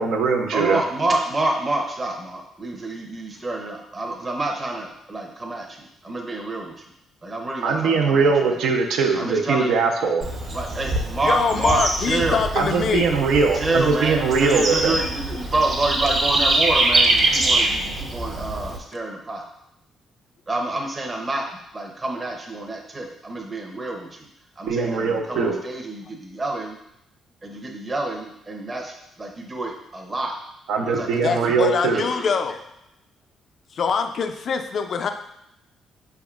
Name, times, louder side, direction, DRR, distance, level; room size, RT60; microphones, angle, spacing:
voice 1, 0.0-0.8 7.6-10.2 12.6-14.9 24.7-25.5 30.7-32.0, right 4 dB, 85° right, 2 dB, 0.6 m, -21 dB
voice 2, 0.5-6.7 7.2-8.6 9.1-9.9 10.5-12.4 13.4-19.4 20.5-21.5 21.7-24.3 24.6-26.8 27.4-30.3 30.8-31.5 31.9-32.3, right 2 dB, 30° right, 1 dB, 0.7 m, -28 dB
Bird / Insect, 10.2-18.8, right 2 dB, 60° right, 0.9 m, -24 dB
voice 3, 11.3-13.1 31.2-32.6 33.7-35.1, left 6 dB, 55° left, 7 dB, 0.4 m, -24 dB
5.1 x 3.5 x 2.4 m, 0.80 s
cardioid pair, 90°, 0 cm